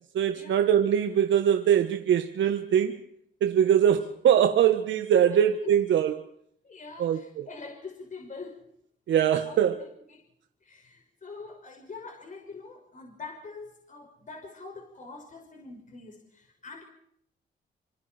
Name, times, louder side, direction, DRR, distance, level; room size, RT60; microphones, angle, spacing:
voice 1, 0.1-3.0 3.4-6.2 7.0-7.5 9.1-9.8, right 9 dB, 80° right, 1.5 m, -22 dB
voice 2, 6.6-8.6 9.5-10.2 10.6-16.8, left 4 dB, 40° left, 5.7 m, -44 dB
27.5 x 26.5 x 4.5 m
cardioid pair, 85°, 19 cm